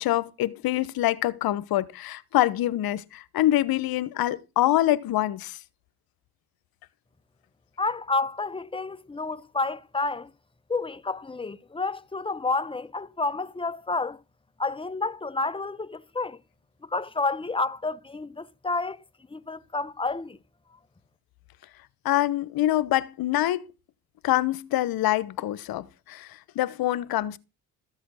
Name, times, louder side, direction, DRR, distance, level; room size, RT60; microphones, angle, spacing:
voice 1, 0.0-5.6 22.0-23.6 24.2-27.4, left 14 dB, 70° left, 1.1 m, -25 dB
voice 2, 7.8-10.3 10.7-14.2 14.6-16.4 16.8-19.0 19.3-20.4, left 3 dB, 15° left, 1.0 m, -30 dB
14.0 x 8.0 x 6.3 m
supercardioid pair, 75°, 37 cm